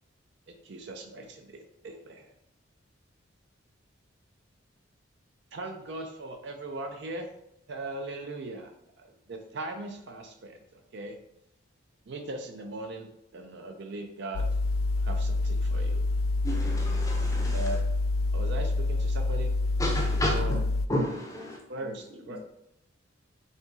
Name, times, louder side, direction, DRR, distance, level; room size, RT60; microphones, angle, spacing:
voice 1, 0.5-2.3 5.5-7.3 7.7-8.7 9.0-11.2 12.1-14.5 15.0-16.0 17.5-17.8 18.3-19.5 20.3-20.6 21.7-22.4, right 2 dB, 55° right, 4 dB, 0.4 m, -39 dB
sound 1, 14.3-20.9, left 2 dB, 85° left, 0.3 m, -27 dB
voice 2, 16.4-17.8 19.8-20.4 20.9-21.6, equal, 15° left, 0 dB, 0.6 m, -31 dB
voice 3, 21.3-22.4, left 1 dB, 25° right, -1 dB, 0.8 m, -48 dB
4.0 x 2.9 x 3.6 m, 0.80 s
head